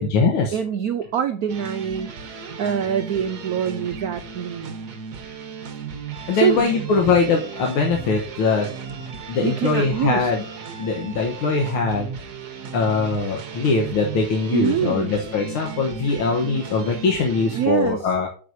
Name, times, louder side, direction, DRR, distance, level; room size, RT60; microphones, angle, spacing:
voice 1, 0.0-0.6 6.3-8.7 9.3-10.4 10.8-12.1 12.7-18.3, left 4 dB, 85° left, 2 dB, 2.0 m, -22 dB
voice 2, 0.5-4.8 6.3-6.9 9.4-10.3 14.5-15.2 17.6-18.1, right 9 dB, 90° right, 9 dB, 0.8 m, -25 dB
sound 1, 1.5-17.7, right 6 dB, 55° right, 1.5 m, -35 dB
8.6 x 6.6 x 2.7 m, 0.41 s
omnidirectional pair, 2.3 m